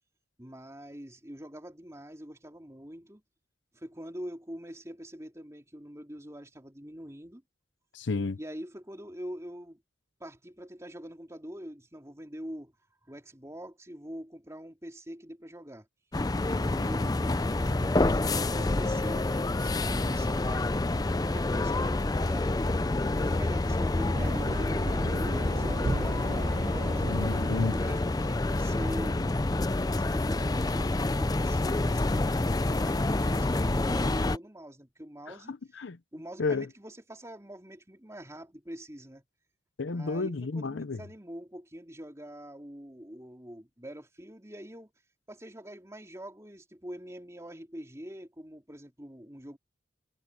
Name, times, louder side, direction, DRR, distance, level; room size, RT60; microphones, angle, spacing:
voice 1, 0.4-3.2 3.7-7.4 8.4-9.8 10.2-12.7 13.0-15.9 16.4-20.7 21.3-27.1 27.6-29.4 29.8-35.5 36.1-39.2 39.9-44.9 45.3-49.6, equal, 15° right, 3.2 m, -44 dB
voice 2, 7.9-8.4 27.1-27.8 35.3-36.0 36.4-36.7 39.8-41.0, left 3 dB, 75° left, 0.7 m, -31 dB
sound 1, 16.1-34.4, left 2 dB, 20° left, 0.5 m, -28 dB
sound 2, 24.1-28.8, right 2 dB, 40° right, 0.6 m, -38 dB
head